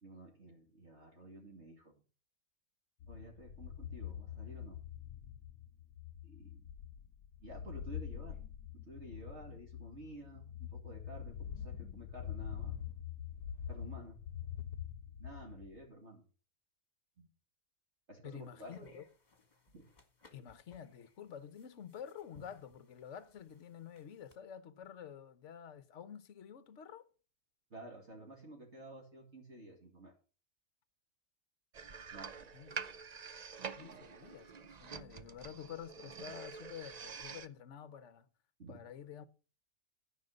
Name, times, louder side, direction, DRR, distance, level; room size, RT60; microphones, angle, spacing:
voice 1, 0.0-2.0 3.1-4.8 6.2-6.7 7.4-8.4 8.7-12.8 13.7-14.2 15.2-16.3 17.2-17.3 18.1-18.9 19.7-19.9 27.7-30.1 32.1-32.5 33.8-34.1 38.6-38.8, right 1 dB, 40° right, 2.8 m, -52 dB
sound 1, 3.0-15.9, left 9 dB, 75° left, 1.3 m, -45 dB
voice 2, 18.2-19.0 20.3-27.1 32.5-33.0 33.8-38.3 38.7-39.3, left 8 dB, 50° left, 1.2 m, -49 dB
sound 2, 18.4-24.4, equal, 25° left, 1.9 m, -64 dB
sound 3, 31.7-37.5, right 6 dB, 65° right, 0.4 m, -47 dB
13.5 x 6.1 x 6.5 m
omnidirectional pair, 1.7 m